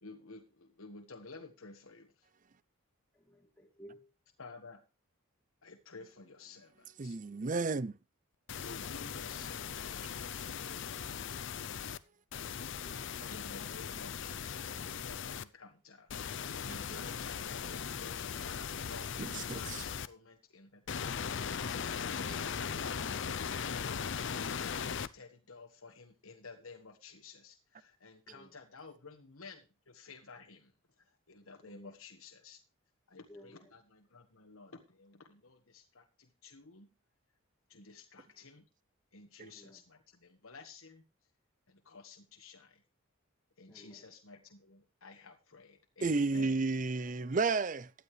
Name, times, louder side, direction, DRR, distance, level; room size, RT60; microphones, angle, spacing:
voice 1, 0.0-2.3 4.4-4.8 5.6-7.2 8.6-11.8 13.3-30.7 31.0-32.6 33.1-36.9 37.7-38.6 39.1-41.0 41.7-42.8 43.6-46.6, left 4 dB, 75° left, 1.5 m, -53 dB
voice 2, 3.1-4.1 12.8-13.2 28.3-28.6 31.6-32.0 33.3-33.8 39.5-39.8 43.7-44.2 47.0-47.1, equal, 5° left, 2.3 m, -57 dB
voice 3, 7.0-7.9 13.2-13.3 16.9-17.0 19.2-19.8 46.0-47.9, right 3 dB, 35° right, 0.5 m, -32 dB
sound 1, 8.5-12.0 12.3-15.4 16.1-20.1 20.9-25.1, left 7 dB, 55° left, 0.6 m, -39 dB
15.5 x 11.0 x 3.3 m
head